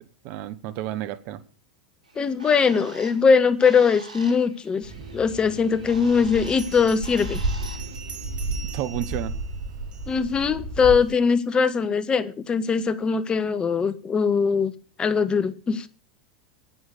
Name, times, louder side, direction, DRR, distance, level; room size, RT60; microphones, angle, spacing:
voice 1, 0.0-1.4 8.7-9.3, right 12 dB, 50° right, 13 dB, 1.2 m, -31 dB
Bird, 2.0-7.9, right 3 dB, 85° right, 2.4 m, -45 dB
voice 2, 2.2-7.4 10.1-14.7 15.0-15.9, left 5 dB, 25° left, 14 dB, 1.1 m, -21 dB
sound 1, 4.8-11.1, right 2 dB, 65° right, 4.5 m, -33 dB
Bell, 6.5-10.4, right 6 dB, 25° right, 3.7 m, -43 dB
10.0 x 9.9 x 6.8 m, 0.38 s
hypercardioid pair, 90°, 4 cm